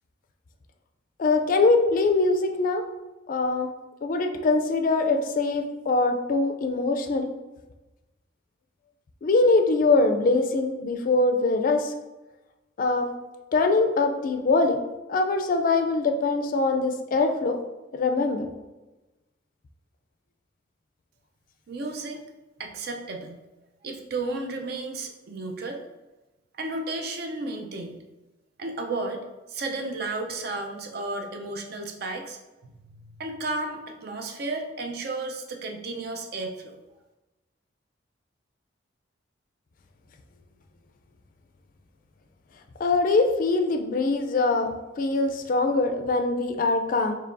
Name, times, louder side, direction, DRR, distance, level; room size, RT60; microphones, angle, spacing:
voice 1, 1.2-2.8 3.3-3.7 4.0-7.3 9.2-11.9 12.8-13.1 13.5-14.8 15.1-17.6 17.9-18.5 42.8-47.1, left 3 dB, 45° left, 5 dB, 0.3 m, -23 dB
voice 2, 21.7-22.2 22.6-23.4 23.8-25.8 26.5-28.0 28.6-32.4 32.6-36.8, right 2 dB, 55° right, 4 dB, 0.5 m, -33 dB
4.6 x 2.9 x 2.5 m, 1.1 s
head